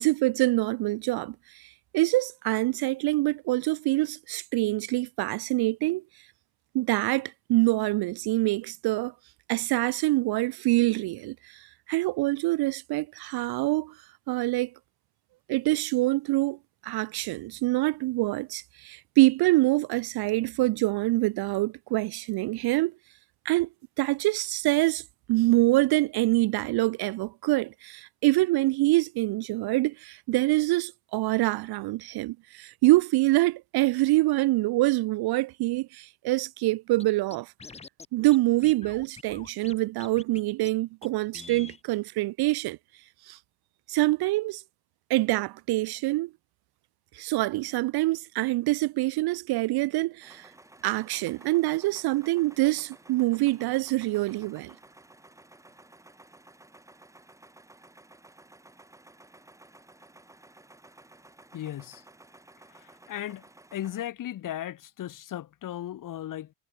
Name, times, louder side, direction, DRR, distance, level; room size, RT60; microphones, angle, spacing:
voice 1, 0.0-6.0 6.7-9.1 9.5-13.9 14.3-14.7 15.5-16.6 16.8-22.9 23.5-23.7 24.0-25.0 25.3-37.5 38.1-42.8 43.3-43.4 43.9-44.6 45.1-46.3 47.1-50.5 50.8-54.7, right 19 dB, 50° right, 0.6 m, -25 dB
Scratching (performance technique), 37.0-37.1 37.3-38.1 38.3-38.4 38.6-39.7 40.0-40.4 40.6-40.7 41.0-41.1 41.3-41.8, left 4 dB, 15° left, 0.9 m, -45 dB
sound 1, 50.2-64.1, right 2 dB, 5° right, 2.1 m, -54 dB
voice 2, 61.5-62.0 62.8-63.4 63.7-66.5, left 12 dB, 40° left, 1.5 m, -36 dB
cardioid pair, 140°, 48 cm